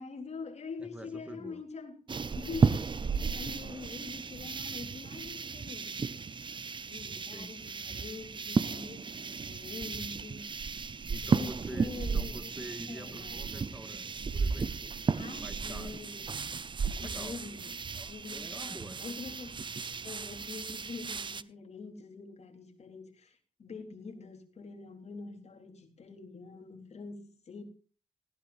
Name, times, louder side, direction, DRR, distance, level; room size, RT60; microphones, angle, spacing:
voice 1, 0.0-2.0 2.4-6.2 6.9-10.6 11.2-13.6 15.1-16.3 17.0-17.8 18.1-19.6 20.0-27.6, left 4 dB, 60° left, 3.8 m, -45 dB
voice 2, 0.8-1.6 7.3-7.6 11.1-14.9 15.3-16.0 16.9-17.4 18.0-19.1, right 1 dB, 10° right, 1.9 m, -47 dB
sound 1, 2.1-21.4, right 5 dB, 40° right, 0.7 m, -34 dB
18.5 x 16.0 x 2.6 m
wide cardioid pair, 135°, 12 cm